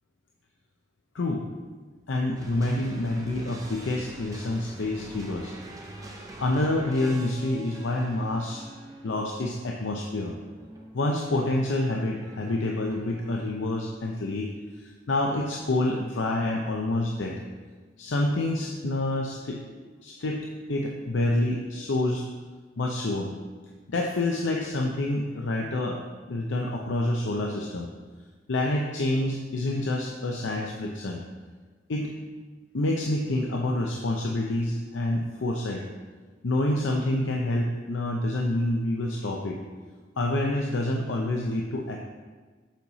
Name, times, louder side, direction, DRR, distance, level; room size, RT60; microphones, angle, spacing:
voice 1, 2.1-5.5 6.4-8.6 9.0-10.3 10.9-14.5 14.8-17.4 18.0-19.6 20.0-22.2 22.8-23.3 23.9-26.0 26.3-27.9 28.5-31.2 31.9-32.1 32.7-35.9 36.4-39.6 40.2-42.0, left 1 dB, 85° left, 1 dB, 0.6 m, -27 dB
sound 1, 2.4-13.6, right 1 dB, 20° right, 0.7 m, -45 dB
7.3 x 5.5 x 4.1 m, 1.4 s
head